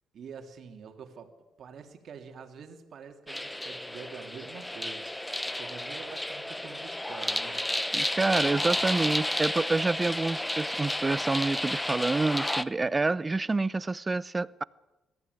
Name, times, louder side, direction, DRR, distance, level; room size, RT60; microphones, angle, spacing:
voice 1, 0.1-1.3 1.6-8.8, right 6 dB, 60° right, 3.0 m, -46 dB
sound 1, 3.3-12.6, left 1 dB, 10° left, 0.9 m, -32 dB
voice 2, 7.9-14.6, right 3 dB, 25° right, 0.7 m, -28 dB
21.5 x 15.0 x 9.6 m
cardioid pair, 90°, 0 cm